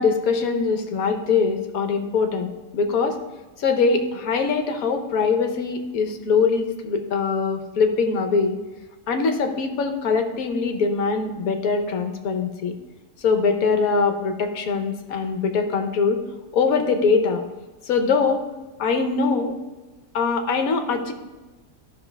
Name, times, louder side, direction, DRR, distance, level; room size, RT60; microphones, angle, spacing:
voice 1, 0.0-2.5 2.7-3.2 3.6-8.6 9.1-12.7 13.2-16.2 16.5-17.4 17.8-18.4 18.8-19.6 20.1-21.1, left 5 dB, 70° left, 5 dB, 1.3 m, -22 dB
12.0 x 5.7 x 3.4 m, 1.2 s
omnidirectional pair, 1.6 m